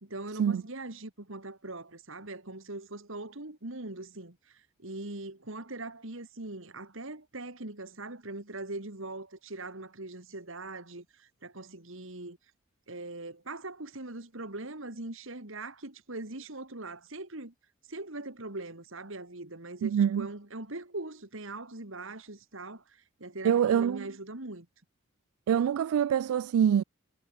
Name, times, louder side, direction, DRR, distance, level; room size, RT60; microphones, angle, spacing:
voice 1, 0.0-12.4 12.9-17.5 17.9-24.7, right 2 dB, 65° right, 2.5 m, -41 dB
voice 2, 19.8-20.3 23.4-24.1 25.5-26.8, right 8 dB, 85° right, 0.3 m, -25 dB
head